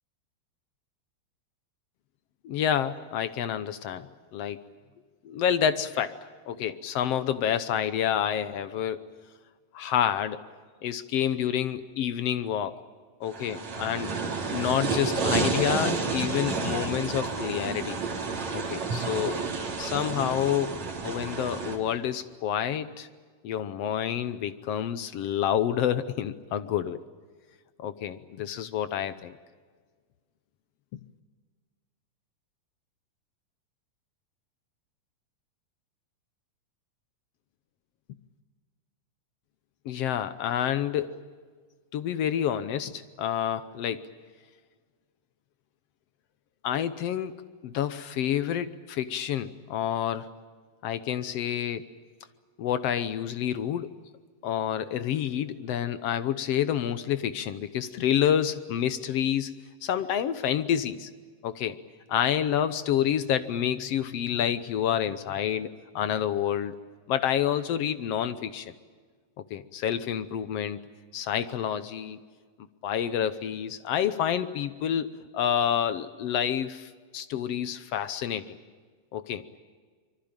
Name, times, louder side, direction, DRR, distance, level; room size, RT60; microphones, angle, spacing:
voice 1, 2.4-4.1 4.3-4.6 5.2-6.2 6.5-9.0 9.7-10.4 10.8-12.8 13.2-14.1 14.5-18.0 18.5-19.4 19.8-20.7 21.0-23.1 23.4-27.0 27.8-29.3 39.8-41.1 41.9-44.0 46.6-50.3 50.8-51.8 52.6-53.9 54.4-59.5 59.8-61.1 61.4-61.8 62.1-65.7 65.9-66.8 67.1-68.7 69.5-70.8 71.1-72.2 72.8-78.6 79.1-79.4, left 9 dB, 70° left, 13 dB, 1.5 m, -28 dB
sound 1, 13.3-21.8, right 4 dB, 55° right, 4.5 m, -30 dB
25.5 x 24.0 x 8.9 m, 1.5 s
omnidirectional pair, 3.8 m